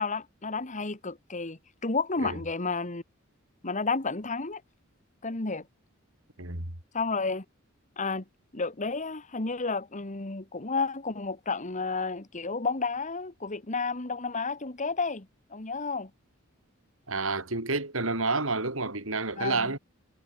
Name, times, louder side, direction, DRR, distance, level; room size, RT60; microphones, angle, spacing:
voice 1, 0.0-3.0 3.6-4.6 5.2-5.6 6.9-7.4 8.0-8.2 8.5-16.1 19.4-19.7, left 4 dB, 35° left, 1.8 m, -31 dB
voice 2, 6.4-6.7 17.1-19.8, right 3 dB, 75° right, 5.3 m, -29 dB
head